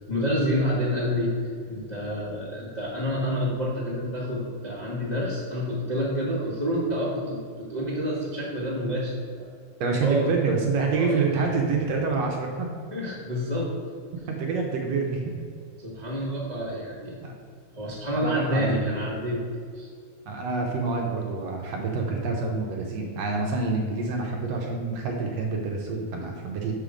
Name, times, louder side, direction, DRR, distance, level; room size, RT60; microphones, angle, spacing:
voice 1, 0.1-1.4 1.7-9.5 10.0-10.3 10.9-11.2 12.9-13.7 15.8-17.3 17.7-19.4 19.7-19.9, equal, 45° left, -7 dB, 0.5 m, -28 dB
voice 2, 9.8-12.7 14.3-15.4 17.2-17.3 18.2-18.7 20.2-26.7, right 4 dB, 70° right, 0 dB, 1.7 m, -27 dB
6.4 x 5.7 x 5.0 m, 2.2 s
omnidirectional pair, 3.5 m